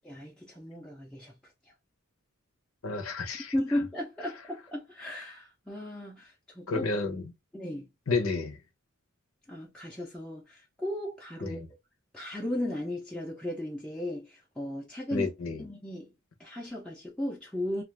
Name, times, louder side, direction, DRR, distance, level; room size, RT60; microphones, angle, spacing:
voice 1, 0.0-1.3 3.5-6.9 7.5-7.9 9.5-11.6 12.1-15.3 15.6-16.1 16.4-17.8, left 1 dB, 5° left, 0.5 m, -35 dB
voice 2, 2.8-3.5 6.7-7.2 8.1-8.6 11.4-11.7 15.1-15.6, left 3 dB, 85° left, 0.8 m, -30 dB
2.4 x 2.4 x 3.2 m
head